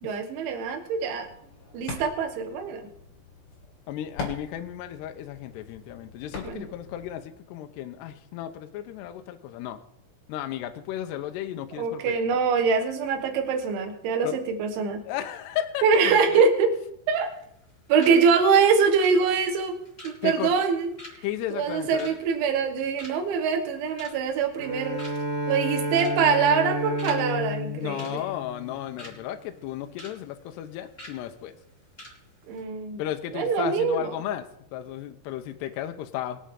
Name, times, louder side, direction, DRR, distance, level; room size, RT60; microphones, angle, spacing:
voice 1, 0.0-1.3 1.7-2.9 6.4-6.7 11.8-15.0 15.8-16.7 17.1-17.3 17.9-19.8 20.0-20.9 21.5-25.0 25.5-28.2 32.5-33.0 33.3-34.1, right 5 dB, 85° right, 5 dB, 3.9 m, -24 dB
sound 1, 1.2-7.2, left 4 dB, 45° left, 3.5 m, -42 dB
voice 2, 3.9-9.8 10.3-12.2 14.2-14.4 15.1-16.5 20.2-20.6 21.2-22.1 27.7-31.6 33.0-36.4, left 11 dB, 80° left, 7 dB, 2.7 m, -34 dB
sound 2, 17.1-17.7 18.0-18.2 18.5-22.7 23.0-23.4 23.7-24.3 24.7-24.8 25.0-25.4 25.9-26.2 26.5-27.2 27.5-27.6 28.0-29.2 29.6-30.2 30.4-30.6 31.0-31.2 31.6-31.7 32.0-32.2 32.4-32.6, left 1 dB, 10° left, 4.1 m, -44 dB
Bowed string instrument, 24.6-29.2, equal, 45° right, 4.7 m, -31 dB
23.0 x 8.6 x 3.8 m, 0.75 s
omnidirectional pair, 5.3 m